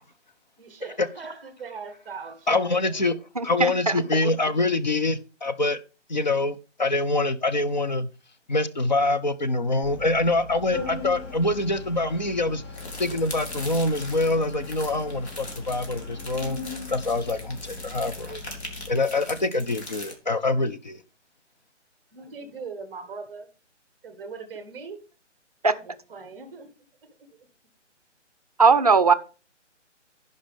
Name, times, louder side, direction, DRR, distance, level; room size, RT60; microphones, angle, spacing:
voice 1, 0.6-2.9 22.1-23.5 24.0-25.0 25.7-26.7, right 4 dB, 5° right, 0.8 m, -40 dB
voice 2, 2.5-3.1 3.4-5.8 6.1-8.1 8.5-12.6 13.0-16.6 16.9-18.4 18.9-21.0, left 2 dB, 40° left, 0.6 m, -25 dB
voice 3, 3.4-4.2 25.6-25.7 28.6-29.1, right 5 dB, 35° right, 0.5 m, -19 dB
Organ, 9.8-18.9, left 4 dB, 15° left, 3.9 m, -39 dB
sound 1, 12.7-20.2, left 1 dB, 60° left, 3.0 m, -41 dB
16.0 x 5.3 x 3.5 m
figure-of-eight pair, 145°, 36 cm